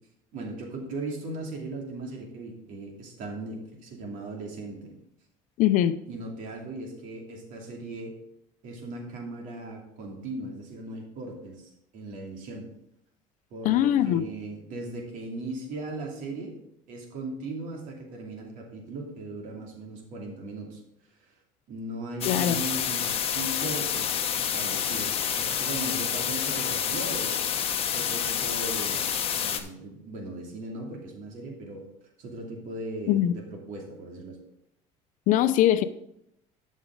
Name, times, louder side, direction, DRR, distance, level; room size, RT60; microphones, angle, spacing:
voice 1, 0.3-4.9 6.1-8.1 8.6-12.7 13.5-16.5 16.9-20.8 21.7-29.0 29.3-31.8 32.2-34.4, right 2 dB, 65° right, 0 dB, 2.8 m, -38 dB
voice 2, 5.6-6.0 13.6-14.2 22.2-22.6 33.1-33.4 35.3-35.8, left 11 dB, 65° left, 12 dB, 0.6 m, -22 dB
sound 1, 22.2-29.6, left 8 dB, 40° left, 1.1 m, -28 dB
11.5 x 6.4 x 3.9 m, 0.78 s
cardioid pair, 120°, 14 cm